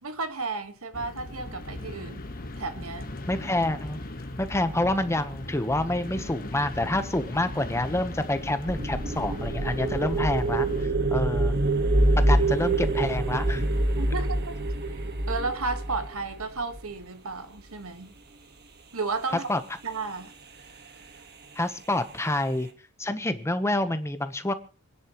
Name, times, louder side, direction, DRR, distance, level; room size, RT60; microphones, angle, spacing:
voice 1, 0.0-2.2 2.6-3.1 14.0-14.6 15.0-18.1 18.9-19.5 19.8-20.3, right 3 dB, 65° right, 1.6 m, -33 dB
sound 1, 0.9-10.9, left 1 dB, 40° left, 1.4 m, -38 dB
voice 2, 3.3-4.0 4.4-11.6 12.3-13.7 19.5-19.6 21.5-22.7 23.0-24.5, left 1 dB, 10° left, 1.0 m, -28 dB
sound 2, 8.7-16.8, right 2 dB, 50° right, 1.6 m, -25 dB
27.0 x 10.0 x 3.1 m
head